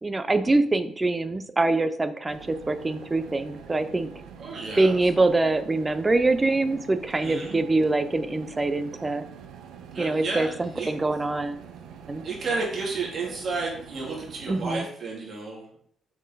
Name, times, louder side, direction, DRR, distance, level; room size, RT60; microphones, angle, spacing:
voice 1, 0.0-4.1 4.8-9.2 10.0-11.6 12.1-12.2 14.5-14.9, right 2 dB, 20° right, 11 dB, 0.7 m, -24 dB
sound 1, 2.3-14.7, right 8 dB, 85° right, 0.9 m, -45 dB
voice 2, 4.4-5.0 7.2-7.6 9.9-10.9 12.2-15.6, right 3 dB, 55° right, -2 dB, 2.8 m, -32 dB
6.3 x 6.2 x 4.0 m, 0.63 s
cardioid pair, 90°, 0 cm